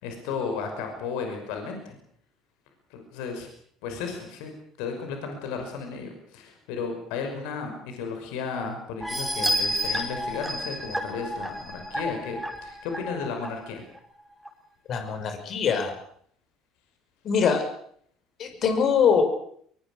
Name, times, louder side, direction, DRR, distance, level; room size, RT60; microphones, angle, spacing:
voice 1, 0.0-2.0 2.9-3.5 3.8-4.5 4.8-13.8, left 5 dB, 65° left, 4 dB, 5.7 m, -34 dB
sound 1, 9.0-13.5 14.0-14.1 14.5-14.6, equal, 5° right, 5.6 m, -30 dB
voice 2, 14.9-15.9 17.2-17.6 18.4-19.2, left 7 dB, 45° left, 6 dB, 5.8 m, -23 dB
24.0 x 23.0 x 6.5 m, 0.63 s
figure-of-eight pair, 60°, 0 cm